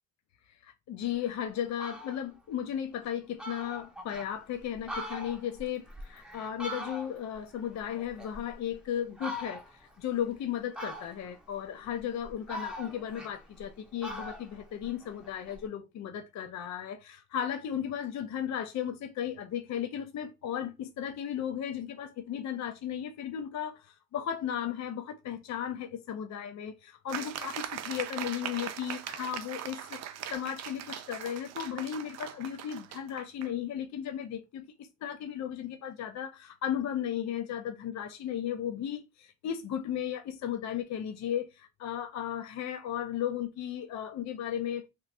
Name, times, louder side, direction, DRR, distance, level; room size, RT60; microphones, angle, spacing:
voice 1, 0.6-44.9, left 9 dB, 65° left, 0.6 m, -35 dB
Fowl, 1.2-1.3 1.6-2.2 2.7-2.8 3.1-3.2 3.4-4.3 4.7-7.4 7.7-8.7 9.2-9.9 10.7-11.4 12.0-13.7 14.0-15.6, equal, 5° right, 0.7 m, -41 dB
sound 1, 27.1-33.5, right 10 dB, 60° right, 0.5 m, -40 dB
3.0 x 2.4 x 3.2 m
cardioid pair, 90°, 30 cm